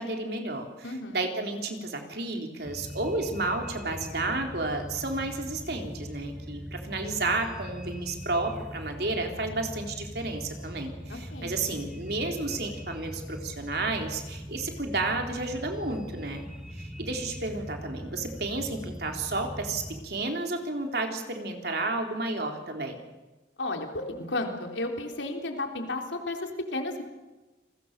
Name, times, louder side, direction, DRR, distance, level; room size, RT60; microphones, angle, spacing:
voice 1, 0.0-16.5 16.7-23.0, right 2 dB, 60° right, 3 dB, 3.8 m, -32 dB
voice 2, 0.8-1.2 11.1-11.5 23.6-27.0, left 2 dB, 80° left, 3 dB, 3.7 m, -33 dB
sound 1, 2.6-20.0, equal, 5° right, 2.1 m, -41 dB
29.5 x 21.5 x 6.8 m, 1.2 s
head